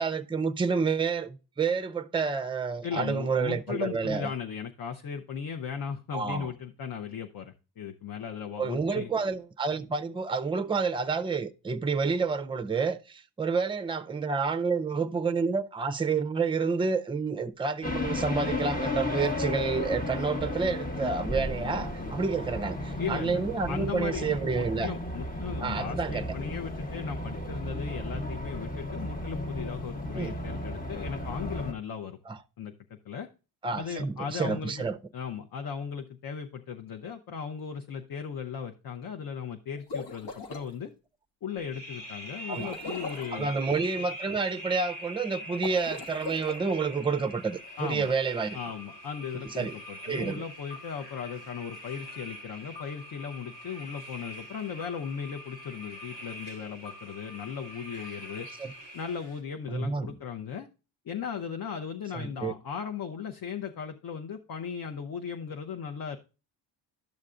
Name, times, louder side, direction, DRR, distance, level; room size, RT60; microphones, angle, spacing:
voice 1, 0.0-4.3 6.1-6.5 8.6-24.9 25.6-26.3 30.1-30.4 32.3-32.4 33.6-35.0 42.5-42.7 43.3-48.6 49.5-49.8 50.0-50.4 58.6-58.7 59.7-60.1 62.1-62.6, right 4 dB, 10° right, 0.5 m, -29 dB
voice 2, 2.8-9.1 23.0-32.2 32.6-33.3 33.7-34.9 35.1-40.9 41.4-43.5 47.8-48.1 48.5-58.5 58.9-60.7 61.0-66.2, left 7 dB, 50° left, 0.7 m, -37 dB
sound 1, 17.8-31.7, left 1 dB, 20° left, 1.0 m, -34 dB
sound 2, 39.7-40.7 42.5-43.4 45.5-46.6, left 3 dB, 70° left, 1.3 m, -39 dB
sound 3, 41.6-59.4, equal, 85° left, 3.0 m, -43 dB
12.0 x 6.4 x 2.4 m
cardioid pair, 70°, 44 cm